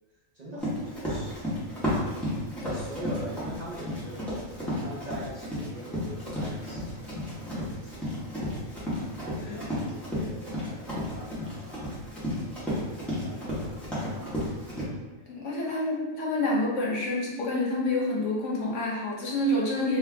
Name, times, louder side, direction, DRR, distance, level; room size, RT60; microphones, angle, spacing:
voice 1, 0.3-1.4 2.6-7.2 7.8-7.9 9.2-12.3 13.1-14.6 15.6-15.9, right 1 dB, 35° right, -7 dB, 0.8 m, -43 dB
Run, 0.6-14.8, left 1 dB, ahead, 1.3 m, -33 dB
voice 2, 9.4-9.9 15.3-20.0, left 1 dB, 70° left, -3 dB, 1.2 m, -28 dB
4.4 x 2.8 x 3.5 m, 1.2 s
omnidirectional pair, 1.4 m